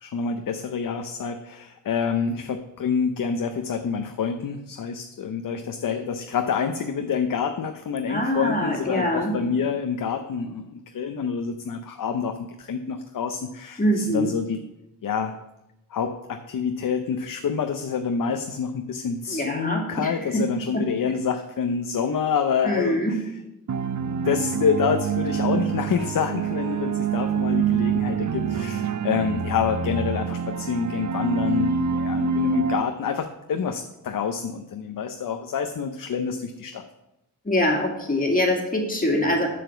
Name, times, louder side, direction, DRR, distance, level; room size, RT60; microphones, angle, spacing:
voice 1, 0.0-14.6 15.0-15.4 15.9-23.2 24.2-36.8, left 6 dB, 65° left, 6 dB, 0.6 m, -27 dB
voice 2, 8.1-9.3 13.8-14.3 19.3-20.4 20.7-20.8 22.6-23.2 37.4-39.5, equal, 25° left, 0 dB, 2.1 m, -24 dB
sound 1, 23.7-32.8, right 6 dB, 55° right, 0.5 m, -26 dB
7.6 x 5.1 x 6.9 m, 0.92 s
wide cardioid pair, 90°, 35 cm